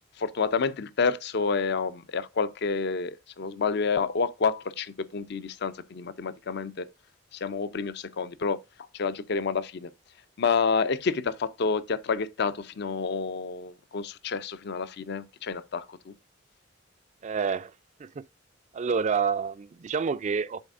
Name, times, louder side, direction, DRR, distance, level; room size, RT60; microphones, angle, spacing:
voice 1, 0.2-6.9 7.3-8.6 8.9-9.9 10.4-16.1, left 5 dB, 60° left, 0.5 m, -29 dB
voice 2, 17.2-17.7 18.0-18.2 18.7-20.6, right 5 dB, 40° right, 0.4 m, -28 dB
11.0 x 4.1 x 2.5 m
head